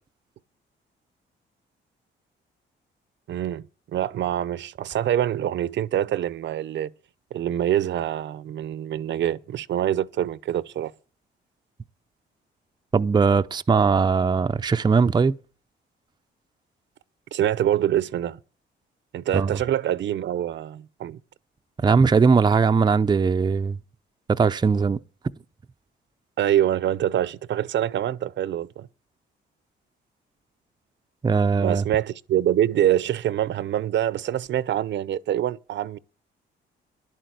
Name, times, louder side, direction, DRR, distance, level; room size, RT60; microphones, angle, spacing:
voice 1, 3.3-3.7 3.9-6.9 7.3-10.9 17.3-18.4 19.1-21.2 26.4-28.9 31.6-36.0, right 11 dB, 65° right, 0.7 m, -25 dB
voice 2, 12.9-15.3 19.3-19.5 21.8-23.8 24.3-25.0 31.2-31.8, right 5 dB, 20° right, 0.5 m, -20 dB
11.0 x 8.4 x 8.0 m
cardioid pair, 90°, 20 cm